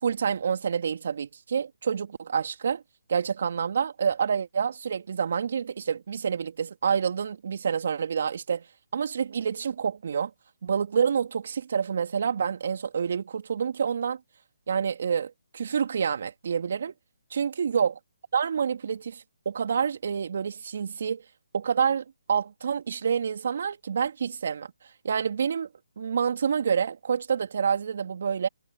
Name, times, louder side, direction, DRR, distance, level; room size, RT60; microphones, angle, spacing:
voice 1, 0.0-2.8 3.1-8.6 8.9-10.3 10.6-14.2 14.7-16.9 17.3-18.0 18.3-21.2 21.5-24.7 25.0-25.7 26.0-28.5, right 7 dB, 55° right, 3.1 m, -28 dB
figure-of-eight pair, 145°, 0 cm